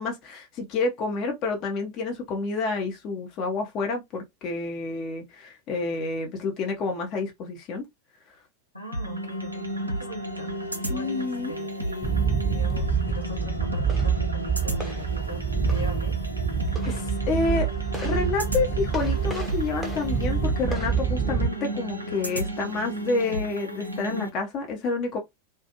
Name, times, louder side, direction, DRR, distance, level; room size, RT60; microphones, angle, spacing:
voice 1, 0.0-7.8 10.9-11.5 16.8-17.7 18.0-25.2, left 3 dB, 35° left, 0.7 m, -29 dB
voice 2, 8.7-10.6 10.8-16.2, left 1 dB, 90° left, 0.9 m, -41 dB
sound 1, 8.9-24.3, equal, 85° right, 0.6 m, -33 dB
sound 2, 12.0-21.5, right 6 dB, 5° right, 0.7 m, -27 dB
2.4 x 2.3 x 2.7 m
figure-of-eight pair, 90°, 0 cm